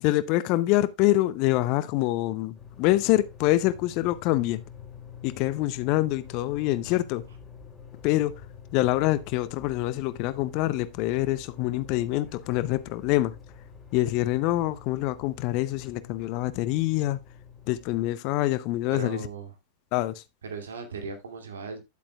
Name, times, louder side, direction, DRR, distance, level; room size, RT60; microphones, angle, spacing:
voice 1, 0.0-4.6 5.2-7.2 8.0-8.4 8.7-13.3 13.9-17.2 17.7-19.2 19.9-20.2, left 16 dB, 45° left, 0.7 m, -25 dB
sound 1, 2.5-18.1, left 6 dB, 15° left, 4.0 m, -47 dB
voice 2, 18.9-19.5 20.4-21.8, right 4 dB, 65° right, 2.5 m, -37 dB
10.5 x 8.4 x 2.4 m
figure-of-eight pair, 90°, 0 cm